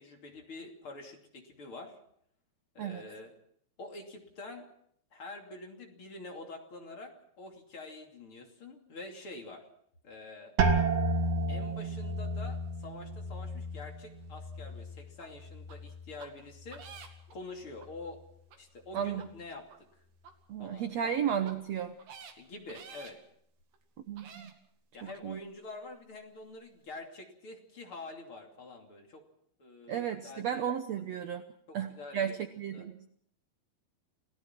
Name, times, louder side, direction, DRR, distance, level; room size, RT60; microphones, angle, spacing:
voice 1, 0.0-2.0 2.8-3.3 3.8-4.7 5.1-9.7 10.0-10.5 11.5-16.8 17.3-18.2 18.6-19.9 20.6-21.2 22.4-23.2 24.9-29.2 29.6-30.6 31.7-32.4 32.7-32.9, left 2 dB, 35° left, 2 dB, 3.3 m, -46 dB
sound 1, 10.6-16.2 16.5-17.2 17.8-18.2, right 3 dB, 50° right, 2.3 m, -33 dB
sound 2, 15.2-15.3 15.7-15.8 16.2-16.3 16.7-17.3 17.8-17.9 18.5-18.6 19.1-19.3 19.7-19.8 20.2-20.3 21.0-21.1 21.4-21.5 22.0-22.3 22.7-23.1 23.7-23.8 24.2-24.5 25.1-25.2, right 6 dB, 65° right, 3.8 m, -49 dB
voice 2, 20.5-22.0 24.1-24.5 25.0-25.4 29.9-31.4 31.7-33.0, right 8 dB, 85° right, 8 dB, 1.4 m, -34 dB
29.0 x 17.0 x 6.0 m, 0.67 s
omnidirectional pair, 4.5 m